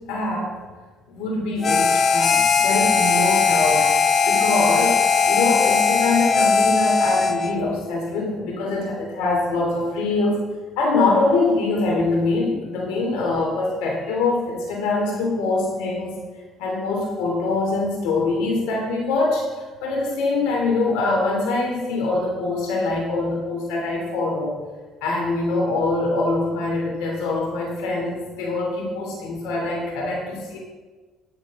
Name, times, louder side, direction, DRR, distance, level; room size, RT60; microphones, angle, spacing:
voice 1, 0.1-0.5 1.1-3.9 4.3-5.0 5.2-10.4 10.8-16.1 16.6-24.5 25.0-30.6, left 3 dB, 85° left, -1 dB, 3.1 m, -24 dB
Harmonica, 1.6-7.6, left 5 dB, 45° left, 0.8 m, -19 dB
18.0 x 6.7 x 3.8 m, 1.3 s
supercardioid pair, 95°, 0 cm